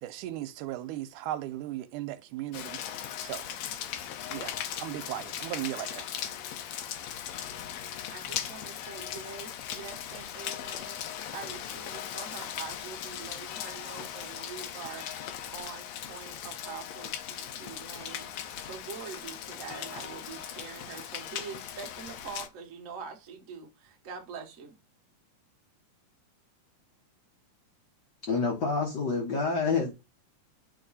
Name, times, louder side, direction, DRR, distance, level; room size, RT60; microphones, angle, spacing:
voice 1, 0.0-2.8 3.2-3.4 4.3-4.5 4.8-6.0, right 14 dB, 80° right, 2.1 m, -36 dB
Rain, 2.5-22.5, left 10 dB, 75° left, 1.7 m, -39 dB
voice 2, 8.1-11.0 11.3-15.1 15.5-18.3 18.6-24.7, right 6 dB, 55° right, 0.8 m, -44 dB
voice 3, 28.3-29.9, left 4 dB, 55° left, 1.2 m, -27 dB
9.4 x 3.7 x 4.1 m
omnidirectional pair, 3.8 m